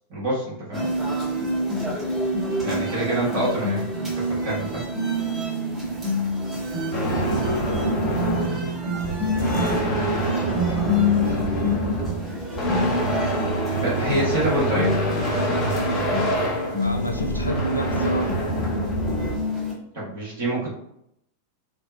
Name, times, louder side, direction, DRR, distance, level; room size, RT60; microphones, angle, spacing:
voice 1, 0.1-0.8 2.6-4.8 13.7-14.9 19.9-20.7, right 1 dB, 60° right, -7 dB, 1.3 m, -26 dB
sound 1, 0.7-19.7, left 1 dB, 20° right, 0.9 m, -27 dB
voice 2, 6.5-10.0 16.7-18.3, left 1 dB, 85° left, 3 dB, 0.3 m, -32 dB
sound 2, 6.9-19.3, right 1 dB, 25° left, 0.8 m, -26 dB
2.9 x 2.1 x 2.3 m, 0.76 s
figure-of-eight pair, 90°, 0 cm